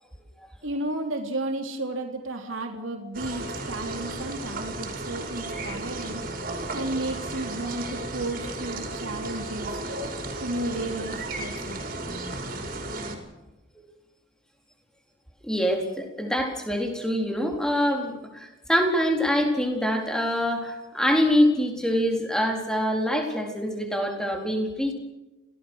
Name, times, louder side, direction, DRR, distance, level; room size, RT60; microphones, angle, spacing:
voice 1, 0.6-6.2 6.7-9.7 10.4-11.9, right 2 dB, 90° right, 3 dB, 3.4 m, -33 dB
sound 1, 3.1-13.2, right 2 dB, 45° right, 5.3 m, -34 dB
voice 2, 15.4-24.9, equal, 5° left, 2 dB, 4.1 m, -25 dB
27.0 x 18.5 x 6.4 m, 1.0 s
head